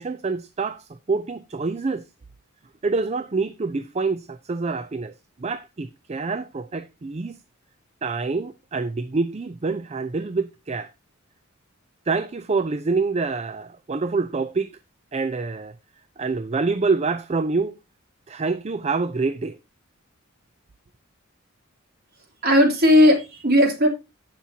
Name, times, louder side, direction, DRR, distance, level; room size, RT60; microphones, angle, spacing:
voice 1, 0.0-2.0 2.8-5.1 5.4-7.4 8.0-10.9 12.1-14.7 15.1-15.7 16.2-17.8 18.3-19.6, right 4 dB, 30° right, 0.4 m, -26 dB
voice 2, 22.4-23.9, left 1 dB, 45° right, 3.0 m, -16 dB
15.0 x 6.0 x 2.8 m
head